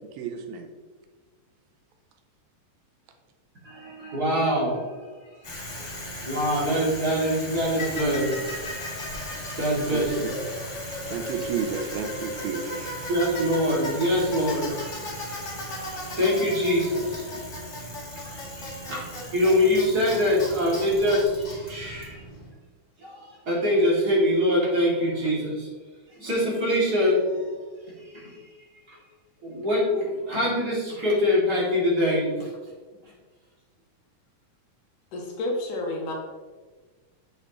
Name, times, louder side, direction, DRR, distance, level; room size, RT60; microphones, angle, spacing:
voice 1, 0.2-0.7 9.9-10.3 11.0-12.9, right 6 dB, 90° right, 5 dB, 2.7 m, -32 dB
voice 2, 3.6-5.1 5.8-5.9 6.2-8.8 9.6-10.4 11.2-11.3 13.1-17.4 18.2-22.2 23.0-25.7 26.2-27.5 28.0-28.4 29.4-32.5, equal, 30° right, -6 dB, 2.8 m, -24 dB
Bicycle, 5.4-22.5, left 1 dB, 30° left, 1.5 m, -36 dB
voice 3, 35.1-36.1, left 1 dB, 70° left, 0 dB, 2.6 m, -30 dB
8.0 x 7.9 x 3.1 m, 1.4 s
omnidirectional pair, 4.0 m